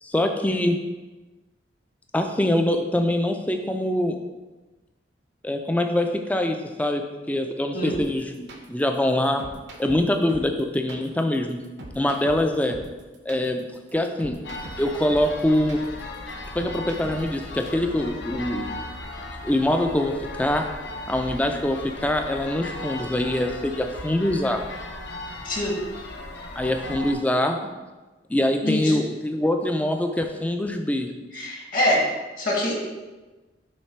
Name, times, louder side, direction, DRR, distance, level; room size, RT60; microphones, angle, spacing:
voice 1, 0.0-0.8 2.1-4.2 5.4-9.4 9.8-11.6 12.0-12.8 13.3-14.4 14.8-15.8 16.5-18.7 19.4-20.6 21.1-24.6 26.6-27.6 28.3-31.1, left 1 dB, 10° left, 5 dB, 0.4 m, -24 dB
sound 1, 7.9-17.4, right 1 dB, 70° right, 0.8 m, -41 dB
sound 2, 14.4-27.1, left 2 dB, 70° left, 0.8 m, -37 dB
voice 2, 25.4-25.8 28.6-29.0 31.3-32.1 32.4-32.8, left 1 dB, 45° left, -1 dB, 1.2 m, -24 dB
6.4 x 3.3 x 4.4 m, 1.2 s
head